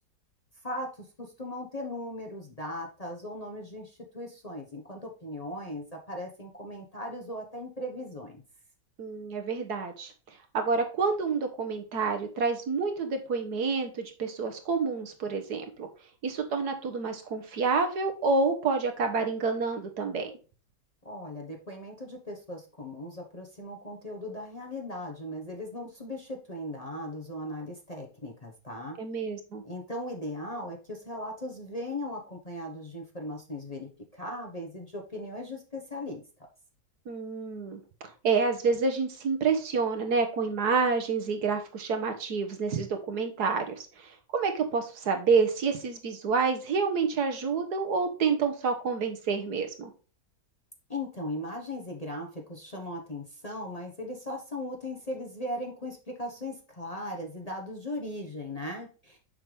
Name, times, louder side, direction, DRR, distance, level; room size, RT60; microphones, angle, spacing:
voice 1, 0.6-8.4 21.0-29.0 29.6-36.2 50.9-59.2, left 1 dB, 25° left, 1 dB, 1.1 m, -38 dB
voice 2, 9.0-10.1 10.5-15.9 16.2-20.3 29.0-29.6 37.1-37.8 38.2-49.9, right 4 dB, 65° right, 5 dB, 1.6 m, -28 dB
7.0 x 5.8 x 3.4 m, 0.35 s
omnidirectional pair, 1.9 m